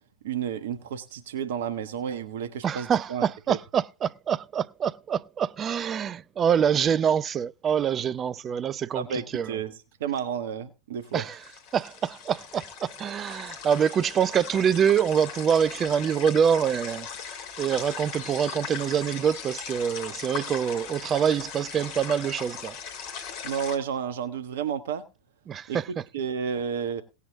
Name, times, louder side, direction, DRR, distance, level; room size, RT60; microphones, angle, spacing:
voice 1, 0.2-3.6 8.9-9.7 10.0-11.2 23.4-25.0 25.7-25.8 26.1-27.0, right 7 dB, 60° right, 1.2 m, -31 dB
voice 2, 2.6-9.6 11.1-11.4 11.7-17.1 17.6-22.8 25.5-26.0, right 8 dB, 25° right, 0.5 m, -25 dB
sound 1, 11.0-23.8, left 7 dB, 45° left, 2.8 m, -39 dB
17.5 x 8.3 x 3.6 m
figure-of-eight pair, 90°, 0 cm